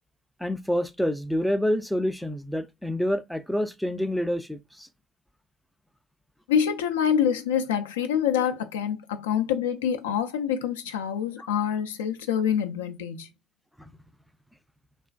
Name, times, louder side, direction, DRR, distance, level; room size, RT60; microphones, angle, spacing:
voice 1, 0.4-4.9 11.4-11.5, equal, ahead, 0.4 m, -27 dB
voice 2, 6.5-13.3, left 8 dB, 85° left, 0.3 m, -26 dB
2.4 x 2.4 x 2.2 m
hypercardioid pair, 65°, 0 cm